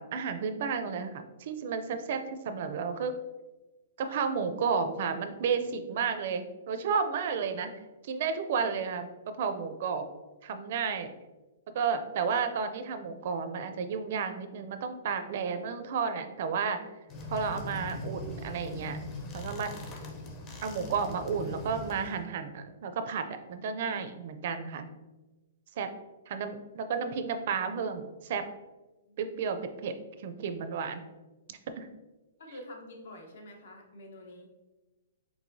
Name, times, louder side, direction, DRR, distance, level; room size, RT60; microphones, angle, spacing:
voice 1, 0.0-3.2 4.0-7.7 8.0-9.1 9.4-10.1 10.4-11.1 11.7-16.8 17.3-19.0 19.3-19.7 20.6-24.9 25.8-25.9 26.3-28.4 29.2-29.9 30.2-31.0 31.5-31.9, right 6 dB, 55° right, 9 dB, 0.4 m, -32 dB
sound 1, 17.1-22.2, left 1 dB, 25° left, 0.6 m, -40 dB
voice 2, 32.4-34.5, left 1 dB, 70° left, 2 dB, 1.0 m, -47 dB
4.6 x 3.8 x 2.6 m, 1.1 s
hypercardioid pair, 150°, 0 cm